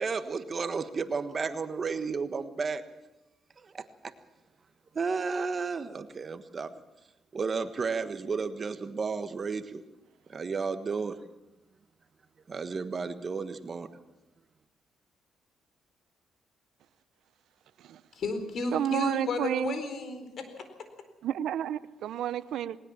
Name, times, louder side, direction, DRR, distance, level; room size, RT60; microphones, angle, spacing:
voice 1, 0.0-2.8 3.6-4.1 4.9-6.7 7.3-9.8 10.3-11.2 12.5-13.9, right 5 dB, 40° right, 11 dB, 1.4 m, -33 dB
voice 2, 18.1-20.5, left 3 dB, 60° left, 8 dB, 4.2 m, -33 dB
voice 3, 18.7-19.8 21.2-22.8, right 10 dB, 75° right, 16 dB, 0.8 m, -31 dB
19.5 x 19.5 x 7.4 m, 0.97 s
cardioid pair, 90°, 0 cm